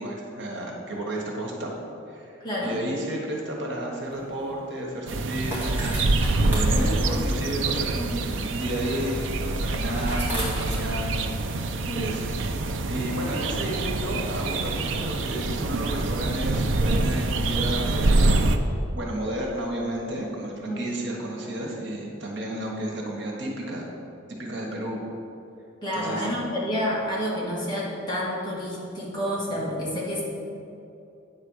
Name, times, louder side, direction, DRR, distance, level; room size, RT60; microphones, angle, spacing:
voice 1, 0.0-1.7 2.1-5.9 6.2-11.3 11.5-11.6 11.9-12.3 12.8-18.5 18.9-23.9 24.3-25.0 25.9-26.3, right 1 dB, 65° right, -1 dB, 1.6 m, -32 dB
voice 2, 2.4-2.8 6.7-7.0 11.9-12.1 20.6-20.8 25.8-30.2, equal, 25° left, -6 dB, 2.0 m, -29 dB
sound 1, 4.0-11.7, right 1 dB, 10° right, 2.2 m, -38 dB
sound 2, 5.1-18.6, right 2 dB, 90° right, 0.6 m, -25 dB
9.5 x 4.4 x 6.4 m, 2.7 s
head